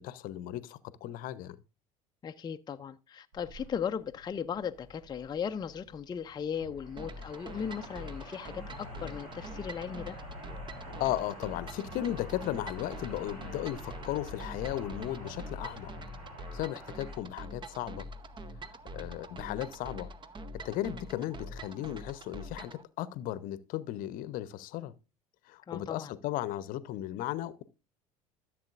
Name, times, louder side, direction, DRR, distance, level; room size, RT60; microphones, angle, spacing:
voice 1, 0.0-1.6 11.0-15.9 16.5-18.1 18.9-20.1 20.6-24.9 25.5-27.6, left 13 dB, 55° left, 0.8 m, -36 dB
voice 2, 2.2-10.2 25.7-26.1, left 7 dB, 25° left, 0.5 m, -37 dB
sound 1, 3.3-19.9, left 1 dB, 70° right, 4.3 m, -47 dB
sound 2, 7.0-22.8, right 1 dB, 25° right, 0.9 m, -45 dB
14.5 x 7.5 x 2.5 m
figure-of-eight pair, 65°, 18 cm